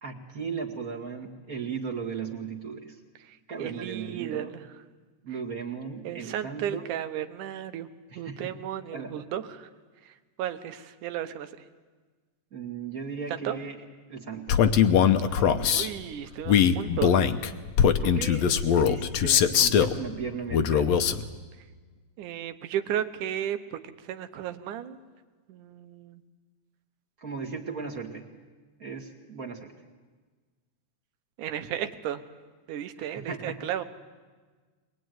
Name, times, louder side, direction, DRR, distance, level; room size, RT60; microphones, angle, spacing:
voice 1, 0.0-3.0 3.5-4.5 5.2-6.9 8.1-8.5 8.9-9.1 12.5-13.8 14.1-14.6 15.3-15.8 18.0-21.1 27.2-28.3 28.8-29.7 33.0-33.5, right 5 dB, 35° right, 2 dB, 2.0 m, -36 dB
voice 2, 3.6-4.7 6.0-7.9 8.2-9.7 10.4-11.5 13.3-13.6 15.7-17.3 22.2-23.8 24.0-25.0 25.5-26.2 31.4-32.2 32.7-33.8, right 10 dB, 85° right, 10 dB, 2.5 m, -34 dB
Male speech man speaking, 14.5-15.9 16.4-20.0 20.5-21.2, left 8 dB, 70° left, 1.9 m, -21 dB
22.0 x 22.0 x 9.3 m, 1.4 s
omnidirectional pair, 3.5 m